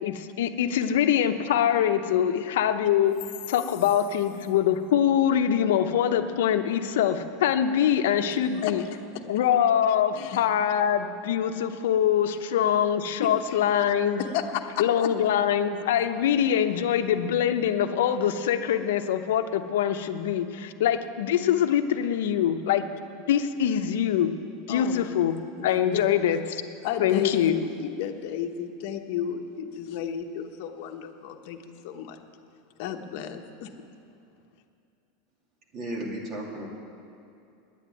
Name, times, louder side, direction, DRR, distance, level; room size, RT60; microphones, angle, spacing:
voice 1, 0.0-3.2 3.5-8.8 9.3-14.2 14.8-22.8 23.3-24.3 24.7-25.3 25.6-26.6 27.0-27.6, left 9 dB, 80° left, 8 dB, 0.8 m, -24 dB
voice 2, 8.3-9.0 10.2-10.4 13.2-13.7 14.2-15.1 16.4-16.5 24.7-25.7 25.9-26.1 26.8-32.2 32.8-33.7, left 9 dB, 55° left, 4 dB, 1.0 m, -33 dB
voice 3, 35.7-36.7, right 1 dB, 30° right, -1 dB, 2.4 m, -34 dB
9.9 x 9.4 x 9.1 m, 2.7 s
supercardioid pair, 155°, 0 cm